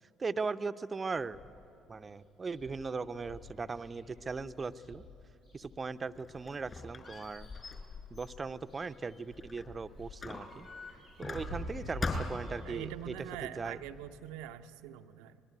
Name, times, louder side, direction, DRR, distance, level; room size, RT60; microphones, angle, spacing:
voice 1, 0.2-1.4 1.9-5.1 5.5-7.5 8.1-10.7 11.2-13.1 13.6-13.8, right 4 dB, 30° right, 13 dB, 0.7 m, -38 dB
sound 1, 1.2-1.8 2.1-2.2 2.4-6.5 7.0-7.9 8.1-14.0, left 1 dB, 90° left, 6.5 m, -49 dB
Squeak, 5.9-9.7 10.2-11.7 12.0-12.6, left 3 dB, 35° left, 5.5 m, -41 dB
voice 2, 11.5-11.9 12.6-15.4, right 12 dB, 70° right, 9 dB, 0.7 m, -44 dB
24.5 x 20.5 x 9.6 m, 2.7 s
figure-of-eight pair, 50°, 0 cm